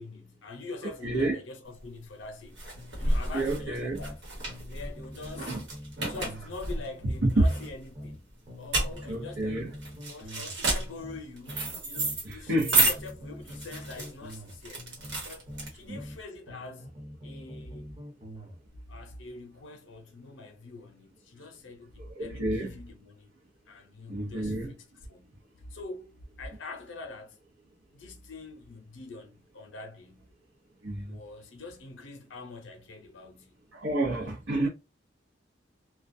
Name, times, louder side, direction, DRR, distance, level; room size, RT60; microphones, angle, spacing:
voice 1, 0.0-2.7 3.0-4.2 4.7-5.6 6.1-9.8 10.1-14.8 15.2-15.5 15.7-16.9 17.2-17.9 18.9-23.3 23.7-25.4 25.7-27.4 27.9-30.3 31.1-33.6 34.1-34.4, left 3 dB, 85° left, 0.6 m, -45 dB
voice 2, 1.0-1.4 3.3-4.0 5.5-5.6 7.2-7.4 9.0-9.7 12.2-12.9 15.9-16.0 22.0-22.7 24.1-24.7 30.8-31.2 33.7-34.7, right 1 dB, 90° right, 0.7 m, -29 dB
sound 1, 1.7-16.1, right 2 dB, 75° right, 1.0 m, -31 dB
sound 2, 2.7-4.2 4.5-8.2 8.5-12.2 12.5-16.2 16.5-18.6, equal, 30° right, 1.0 m, -44 dB
2.3 x 2.1 x 2.5 m
head